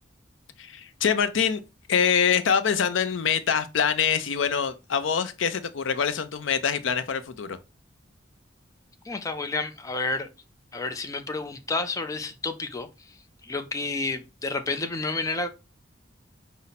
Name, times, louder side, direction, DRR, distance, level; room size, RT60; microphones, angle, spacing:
voice 1, 0.6-1.6 1.9-7.6, left 7 dB, 80° left, 0.5 m, -24 dB
voice 2, 9.1-10.3 10.7-13.2 13.4-15.5, left 3 dB, 20° left, 0.4 m, -30 dB
5.3 x 2.0 x 4.0 m
head